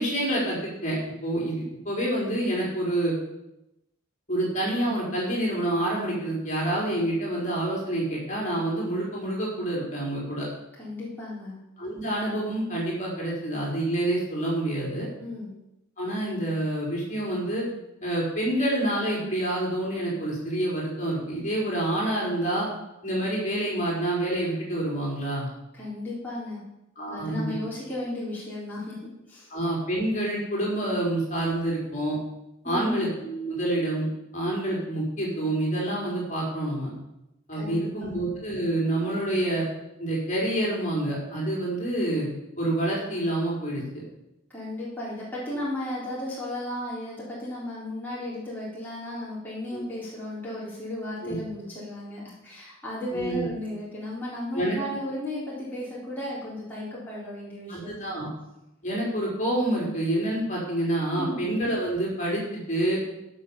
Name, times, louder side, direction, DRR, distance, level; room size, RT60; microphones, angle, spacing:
voice 1, 0.0-3.1 4.3-10.5 11.8-15.1 16.0-17.7 18.0-22.7 23.0-25.5 27.0-27.4 29.5-32.2 32.6-34.1 34.3-36.9 37.5-39.7 40.0-42.3 42.6-43.8 49.7-49.8 51.2-51.4 53.1-53.5 54.5-54.8 57.7-58.3 58.8-63.0, right 1 dB, 35° left, -4 dB, 4.4 m, -27 dB
voice 2, 10.8-11.6 15.2-15.5 25.7-26.6 27.1-29.5 32.6-33.0 37.5-38.1 44.5-58.0 61.2-61.5, left 1 dB, 10° left, -8 dB, 3.8 m, -35 dB
14.5 x 6.5 x 7.3 m, 0.89 s
head